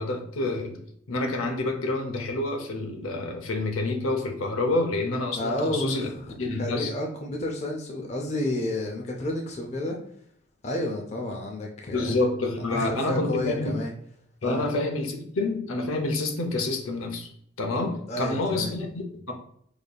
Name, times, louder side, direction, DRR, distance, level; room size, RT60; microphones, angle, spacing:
voice 1, 0.0-6.1 6.4-6.9 11.9-13.7 14.4-17.3 17.6-19.3, left 2 dB, 80° left, 4 dB, 0.6 m, -28 dB
voice 2, 5.4-6.0 6.3-10.0 10.6-12.2 12.6-13.9 14.4-14.7 18.1-18.7, left 1 dB, 35° left, 0 dB, 0.5 m, -30 dB
4.9 x 2.7 x 2.3 m, 0.65 s
head